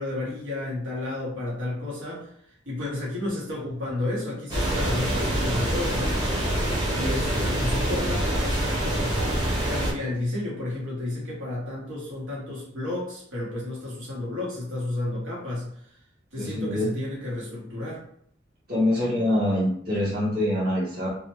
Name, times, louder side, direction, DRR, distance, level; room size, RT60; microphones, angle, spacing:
voice 1, 0.0-2.3 2.7-6.3 6.9-15.7 16.3-18.0, left 2 dB, 90° right, -6 dB, 1.2 m, -32 dB
sound 1, 4.5-9.9, right 1 dB, 20° right, 0.7 m, -25 dB
voice 2, 16.4-16.9 18.7-21.1, left 1 dB, 50° right, -7 dB, 0.9 m, -25 dB
2.4 x 2.1 x 2.9 m, 0.64 s
head